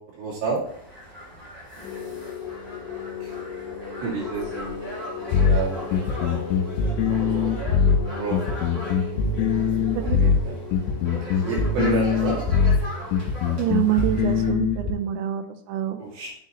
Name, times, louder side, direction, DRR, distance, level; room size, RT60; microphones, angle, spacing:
voice 1, 0.1-0.6 3.2-3.3 4.0-4.8 5.3-5.9 7.1-7.6 8.1-8.4 10.0-10.6 11.2-12.4 16.0-16.4, right 5 dB, 65° right, -4 dB, 4.1 m, -30 dB
sound 1, 0.6-14.5, equal, 30° right, 3.8 m, -39 dB
sound 2, 1.8-14.6, left 6 dB, 65° left, 3.2 m, -37 dB
sound 3, 5.3-14.9, left 6 dB, 90° left, 3.3 m, -22 dB
voice 2, 13.6-16.0, right 11 dB, 80° right, 7 dB, 2.6 m, -26 dB
8.1 x 6.8 x 3.0 m, 0.67 s
omnidirectional pair, 5.6 m